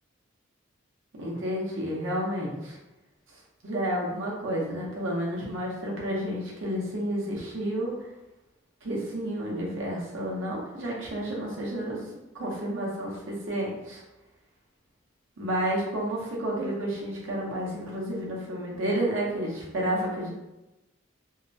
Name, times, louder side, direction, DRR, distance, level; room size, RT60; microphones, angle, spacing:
voice 1, 1.1-2.8 3.6-7.9 8.8-12.0 12.3-14.0 15.4-20.3, right 1 dB, 75° right, -3 dB, 0.8 m, -30 dB
2.7 x 2.1 x 2.6 m, 0.98 s
head